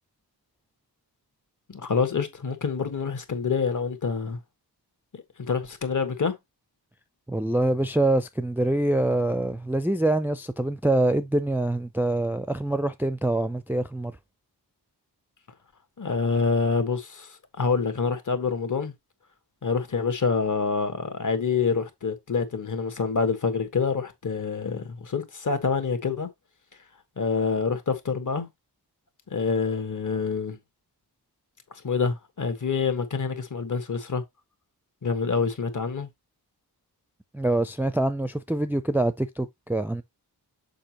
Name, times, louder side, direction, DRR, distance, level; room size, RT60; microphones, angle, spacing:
voice 1, 1.7-4.4 5.4-6.3 16.0-18.9 19.6-26.3 27.2-28.5 29.3-30.6 31.8-34.2 35.0-36.1, left 5 dB, 50° left, 1.4 m, -26 dB
voice 2, 7.3-14.1 37.3-40.0, right 1 dB, 5° right, 0.4 m, -25 dB
6.7 x 5.1 x 2.9 m
wide cardioid pair, 110°, 40 cm